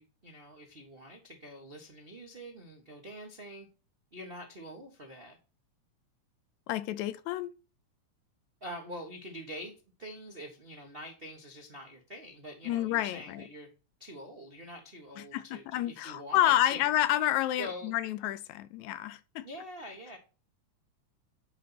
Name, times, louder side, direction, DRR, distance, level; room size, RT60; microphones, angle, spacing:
voice 1, 0.0-3.7 4.1-5.4 8.6-9.7 10.0-13.7 14.0-16.9 17.6-18.2 19.4-20.2, equal, 80° right, 0.5 m, -45 dB
voice 2, 6.7-7.5 12.7-13.4 15.2-19.5, left 13 dB, 80° left, 1.8 m, -29 dB
10.0 x 4.0 x 5.8 m
omnidirectional pair, 3.5 m